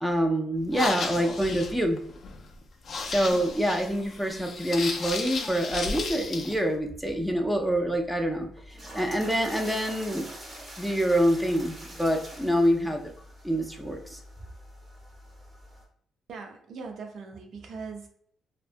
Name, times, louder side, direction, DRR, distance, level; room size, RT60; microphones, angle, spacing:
voice 1, 0.0-2.0 3.1-8.5 8.9-10.3 10.8-13.0 13.4-14.2, equal, ahead, 3 dB, 0.5 m, -26 dB
sound 1, 0.6-6.6, left 4 dB, 55° left, 0.4 m, -34 dB
sound 2, 6.2-15.8, equal, 25° right, 0.9 m, -45 dB
voice 2, 16.3-18.1, right 4 dB, 65° right, 3 dB, 0.5 m, -40 dB
2.6 x 2.2 x 2.5 m, 0.63 s
cardioid pair, 90°, 0 cm